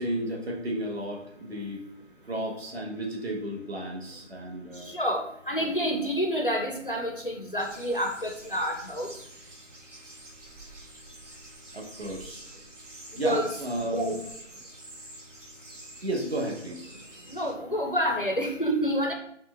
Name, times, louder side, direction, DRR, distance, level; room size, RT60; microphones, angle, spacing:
voice 1, 0.0-1.8 2.2-4.9 11.7-12.4 13.1-14.2 16.0-17.0, right 1 dB, 55° right, -1 dB, 1.1 m, -32 dB
voice 2, 4.9-9.1 13.2-13.5 17.3-19.1, equal, 45° left, 2 dB, 0.4 m, -28 dB
sound 1, 7.6-17.5, right 1 dB, 70° right, 1.1 m, -48 dB
4.3 x 2.1 x 3.5 m, 0.72 s
figure-of-eight pair, 170°, 38 cm